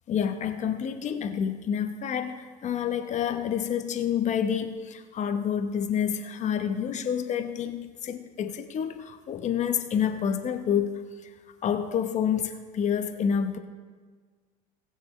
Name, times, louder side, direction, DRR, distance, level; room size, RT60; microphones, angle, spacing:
voice 1, 0.1-11.3 11.6-13.6, left 8 dB, 40° left, 7 dB, 0.9 m, -28 dB
18.5 x 7.0 x 3.2 m, 1.5 s
supercardioid pair, 95°, 19 cm